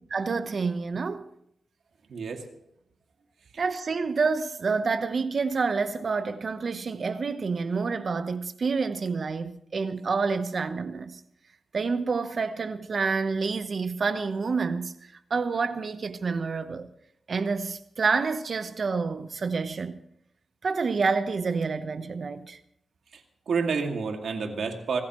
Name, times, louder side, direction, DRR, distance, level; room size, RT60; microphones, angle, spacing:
voice 1, 0.0-1.3 3.6-11.2 11.7-16.9 17.3-20.0 20.6-22.6, right 4 dB, 50° right, 1.0 m, -28 dB
voice 2, 2.1-2.4 23.5-25.0, right 5 dB, 75° right, 2.3 m, -29 dB
26.0 x 14.0 x 3.1 m
wide cardioid pair, 110°, 0 cm